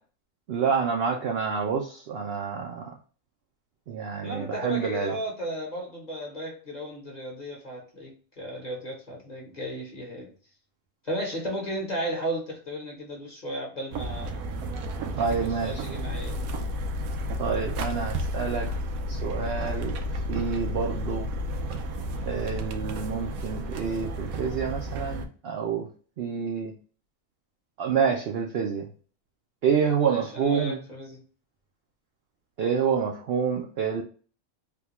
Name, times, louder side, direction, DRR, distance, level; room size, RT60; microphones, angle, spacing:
voice 1, 0.5-2.8 3.9-5.1 15.2-15.8 17.4-18.7 19.1-20.0 20.3-21.3 22.3-25.9 26.2-26.7 27.8-28.9 29.6-30.8 32.6-34.0, right 6 dB, 65° right, 0.6 m, -28 dB
voice 2, 4.2-10.3 11.0-14.4 15.3-16.5 30.1-31.2, equal, 35° left, 0.9 m, -35 dB
sound 1, 13.9-25.3, equal, 80° right, 1.0 m, -32 dB
3.4 x 2.2 x 2.9 m
omnidirectional pair, 1.5 m